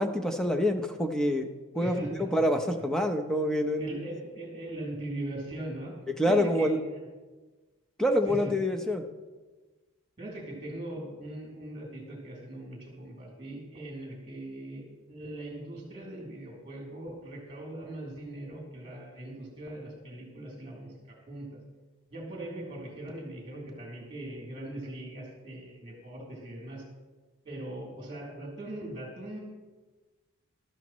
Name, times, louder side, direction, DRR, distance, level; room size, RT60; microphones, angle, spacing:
voice 1, 0.0-3.9 6.1-6.8 8.0-9.0, equal, 5° left, 4 dB, 0.7 m, -27 dB
voice 2, 1.7-2.3 3.8-5.9 6.3-7.1 8.2-8.5 10.2-21.6 22.1-26.8 27.4-29.4, right 1 dB, 25° right, -2 dB, 3.2 m, -40 dB
13.5 x 12.5 x 3.1 m, 1.3 s
head